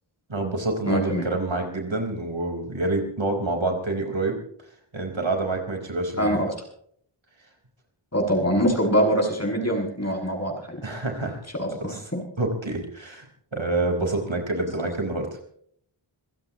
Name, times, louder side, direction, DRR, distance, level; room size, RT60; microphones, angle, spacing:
voice 1, 0.3-4.4 4.9-6.5 10.8-11.4 11.9-12.0 12.4-13.3 13.5-15.3, right 2 dB, 65° right, 3 dB, 4.7 m, -27 dB
voice 2, 0.9-1.3 6.2-6.5 8.1-10.8 11.6-12.2, equal, 30° left, 0 dB, 7.6 m, -24 dB
27.5 x 16.5 x 3.1 m, 0.63 s
wide cardioid pair, 45°, 50 cm